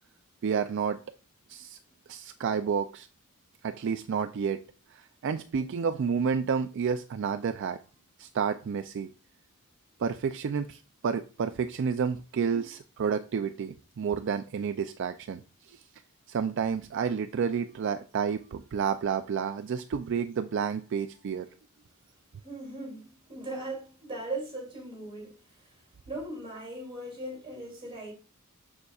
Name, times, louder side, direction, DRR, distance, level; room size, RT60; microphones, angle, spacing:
voice 1, 0.4-1.0 1.5-1.8 2.1-3.1 3.6-4.6 4.9-7.8 8.2-9.1 10.0-15.4 15.7-15.8 16.3-21.5, right 6 dB, 55° right, 0.3 m, -30 dB
voice 2, 22.4-25.7 26.1-28.1, right 2 dB, 25° right, 2.6 m, -39 dB
6.7 x 6.5 x 2.3 m
head